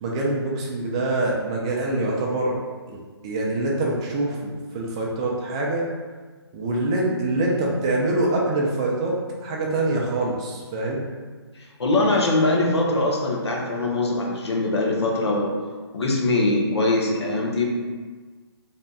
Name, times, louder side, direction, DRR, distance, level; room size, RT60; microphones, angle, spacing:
voice 1, 0.0-2.6 2.9-3.0 3.2-5.9 6.5-9.1 9.4-11.0, right 2 dB, 15° right, -2 dB, 0.3 m, -25 dB
voice 2, 11.5-15.5 15.9-17.7, left 2 dB, 75° left, -1 dB, 0.9 m, -22 dB
3.3 x 2.3 x 4.0 m, 1.4 s
hypercardioid pair, 160°, 14 cm